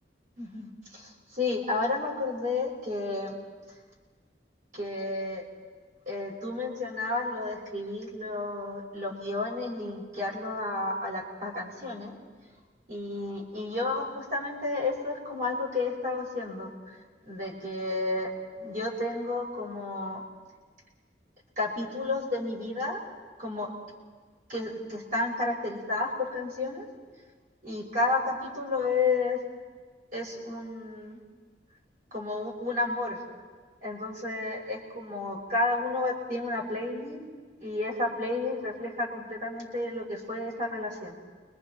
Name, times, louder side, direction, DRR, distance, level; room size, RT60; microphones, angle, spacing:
voice 1, 0.4-3.3 4.7-5.4 6.1-12.1 12.9-17.0 17.3-18.3 18.6-20.2 21.6-23.0 23.4-23.7 24.5-26.9 27.6-29.4 30.1-31.2 32.1-33.2 33.8-37.2 37.6-41.1, left 2 dB, 45° right, -3 dB, 5.9 m, -31 dB
29.5 x 23.0 x 4.5 m, 1.5 s
head